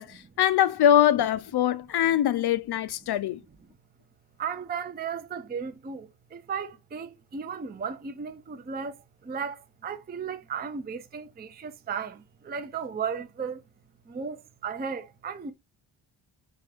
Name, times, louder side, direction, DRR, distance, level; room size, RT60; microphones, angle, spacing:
voice 1, 0.0-3.4, left 10 dB, 55° left, 0.5 m, -23 dB
voice 2, 4.4-13.6 14.1-15.5, right 6 dB, 20° right, 0.5 m, -35 dB
3.6 x 3.3 x 3.4 m
cardioid pair, 70°, 49 cm